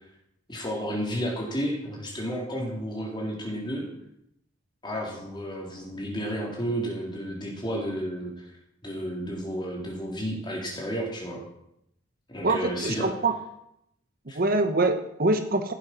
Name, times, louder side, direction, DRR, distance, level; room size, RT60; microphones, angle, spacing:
voice 1, 0.5-3.9 4.8-8.5 8.8-11.4 12.3-13.1 14.3-14.4, equal, 20° left, -2 dB, 3.6 m, -32 dB
voice 2, 12.4-13.4 14.3-15.7, right 2 dB, 45° right, 8 dB, 0.9 m, -24 dB
16.0 x 7.7 x 6.1 m, 0.78 s
head